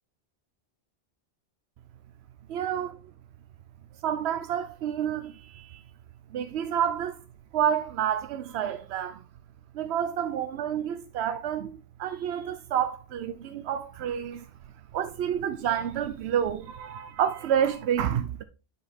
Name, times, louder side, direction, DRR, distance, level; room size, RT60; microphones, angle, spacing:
voice 1, 2.5-3.0 4.0-5.8 6.3-7.2 7.5-9.2 9.7-14.5 14.9-18.4, right 9 dB, 90° right, 0.9 m, -29 dB
7.9 x 5.9 x 3.5 m
omnidirectional pair, 1.1 m